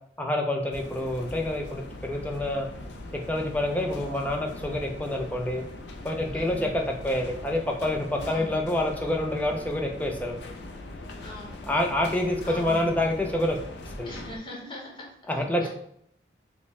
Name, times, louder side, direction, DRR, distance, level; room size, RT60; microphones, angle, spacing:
voice 1, 0.2-2.7 3.3-5.6 6.0-10.4 11.6-13.6 14.0-14.1 15.3-15.7, left 1 dB, 10° left, 1 dB, 0.3 m, -27 dB
sound 1, 0.7-14.4, left 2 dB, 75° left, 0.4 m, -41 dB
voice 2, 2.4-2.7 3.8-4.0 6.3-6.6 8.2-8.5 11.2-11.6 12.4-12.8 14.0-15.1 15.6-15.7, left 1 dB, 25° left, -3 dB, 0.9 m, -42 dB
4.3 x 2.0 x 3.1 m, 0.70 s
head